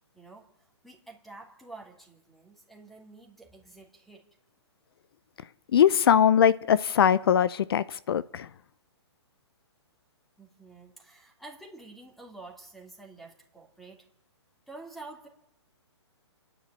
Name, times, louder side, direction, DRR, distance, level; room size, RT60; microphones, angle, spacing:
voice 1, 0.1-0.5 0.8-4.2 10.4-14.1 14.7-15.3, right 3 dB, ahead, 2 dB, 2.9 m, -48 dB
voice 2, 5.7-8.5, left 9 dB, 55° left, 17 dB, 0.7 m, -21 dB
27.5 x 10.5 x 9.7 m, 0.88 s
hypercardioid pair, 150°, 15 cm